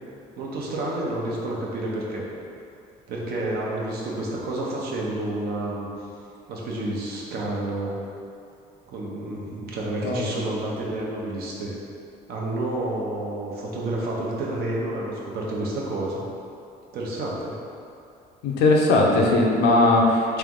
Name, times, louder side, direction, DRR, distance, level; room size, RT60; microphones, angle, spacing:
voice 1, 0.4-2.2 3.1-5.9 6.5-7.9 8.9-11.7 12.3-16.2 16.9-17.6, right 1 dB, 70° right, -3 dB, 0.8 m, -29 dB
voice 2, 18.4-20.4, left 2 dB, 80° left, -1 dB, 0.6 m, -19 dB
3.3 x 3.0 x 3.7 m, 2.6 s
cardioid pair, 110°, 17 cm